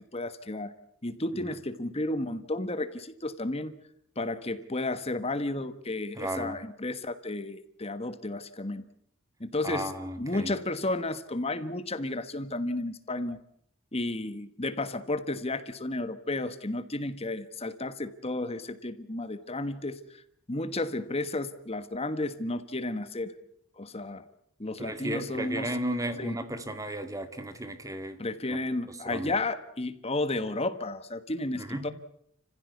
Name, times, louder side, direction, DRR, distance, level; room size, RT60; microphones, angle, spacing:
voice 1, 0.1-0.7 1.0-3.7 4.2-8.8 9.4-9.9 10.2-13.4 13.9-20.2 20.5-23.3 23.8-24.2 24.6-25.7 26.2-26.4 28.2-31.9, left 2 dB, 30° left, 11 dB, 1.3 m, -32 dB
voice 2, 6.2-6.6 9.6-10.5 24.8-28.2 28.5-28.6 28.9-29.3 31.5-31.9, right 1 dB, 15° right, 8 dB, 2.0 m, -34 dB
30.0 x 15.5 x 8.3 m, 0.70 s
head